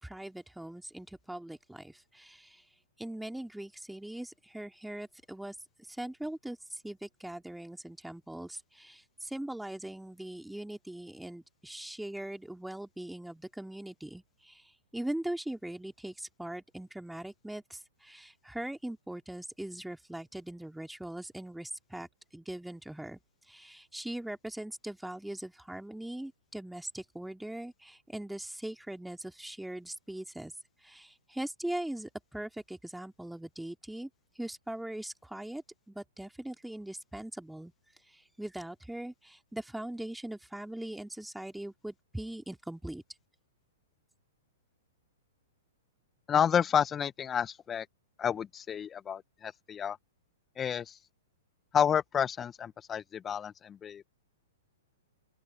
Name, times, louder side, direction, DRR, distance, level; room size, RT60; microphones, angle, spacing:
voice 1, 0.0-2.6 3.0-23.2 23.5-30.5 30.8-34.1 34.3-37.7 38.1-43.0, right 1 dB, 5° right, 3.1 m, -41 dB
voice 2, 46.3-47.9 48.2-50.0 50.6-51.0 51.7-54.0, left 8 dB, 20° left, 1.2 m, -30 dB
open air
hypercardioid pair, 115°, 0 cm